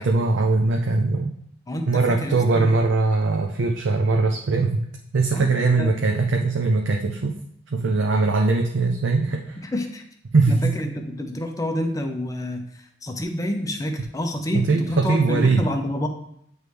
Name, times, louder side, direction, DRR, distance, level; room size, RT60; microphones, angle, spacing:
voice 1, 0.0-1.3 1.9-4.8 5.1-7.3 7.7-9.6 10.3-10.8 14.5-15.7, right 3 dB, 75° right, 2 dB, 0.5 m, -21 dB
voice 2, 1.7-2.7 5.3-5.5 5.8-5.9 9.6-10.0 10.5-12.7 13.0-16.1, left 1 dB, 20° left, 4 dB, 0.6 m, -28 dB
9.2 x 3.2 x 3.3 m, 0.70 s
head